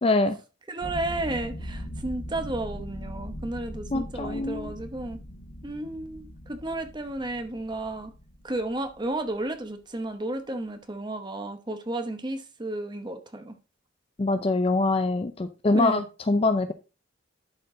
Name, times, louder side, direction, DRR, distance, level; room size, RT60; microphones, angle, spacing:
voice 1, 0.0-0.4 3.9-4.7 14.2-16.7, left 2 dB, 30° left, 0.4 m, -24 dB
voice 2, 0.7-5.2 5.6-8.1 8.4-13.6 15.7-16.1, right 2 dB, 20° right, 0.9 m, -32 dB
sound 1, 0.8-9.2, equal, 50° left, 1.6 m, -40 dB
11.5 x 4.4 x 3.8 m
head